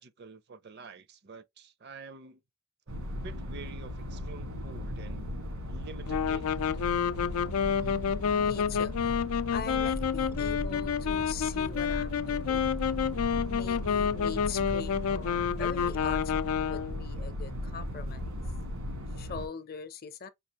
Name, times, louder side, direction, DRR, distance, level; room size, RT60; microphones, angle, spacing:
voice 1, 0.0-2.4 2.9-5.4 5.7-6.6, right 4 dB, 50° right, 0.5 m, -48 dB
sound 1, 2.9-19.5, left 1 dB, 85° right, 1.5 m, -37 dB
sound 2, 6.1-17.0, left 7 dB, 85° left, 0.4 m, -29 dB
voice 2, 7.7-9.2 9.5-12.8 13.4-18.4 19.1-20.3, left 5 dB, 45° left, 0.6 m, -42 dB
5.2 x 2.4 x 2.9 m
head